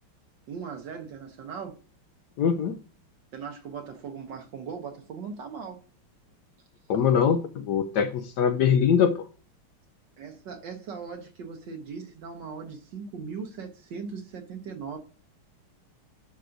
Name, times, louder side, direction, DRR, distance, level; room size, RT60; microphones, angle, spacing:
voice 1, 0.5-1.8 3.3-5.8 10.2-15.0, right 6 dB, 65° right, 1.3 m, -39 dB
voice 2, 2.4-2.8 6.9-9.3, left 7 dB, 75° left, 1.0 m, -23 dB
11.0 x 4.8 x 2.6 m
omnidirectional pair, 2.3 m